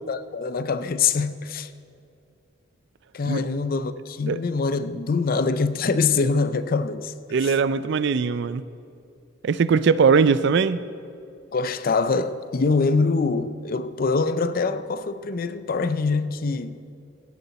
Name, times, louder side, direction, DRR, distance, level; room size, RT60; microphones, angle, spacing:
voice 1, 0.1-1.7 3.1-7.1 11.5-16.8, left 4 dB, 45° left, 0.5 m, -24 dB
voice 2, 7.3-8.6 9.4-10.8, right 5 dB, 60° right, 0.4 m, -20 dB
16.5 x 11.0 x 4.1 m
head